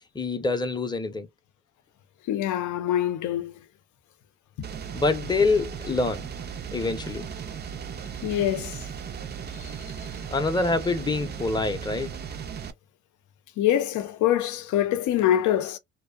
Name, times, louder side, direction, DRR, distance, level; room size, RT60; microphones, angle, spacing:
voice 1, 0.1-1.3 4.9-6.3 6.7-7.3 10.3-12.1, left 3 dB, 15° left, 0.6 m, -25 dB
voice 2, 2.3-3.6 8.2-8.9 9.6-9.7 13.6-15.8, left 11 dB, 75° left, 0.6 m, -25 dB
sound 1, 4.6-12.7, right 7 dB, 35° right, 0.4 m, -36 dB
2.5 x 2.1 x 2.3 m
cardioid pair, 90°, 30 cm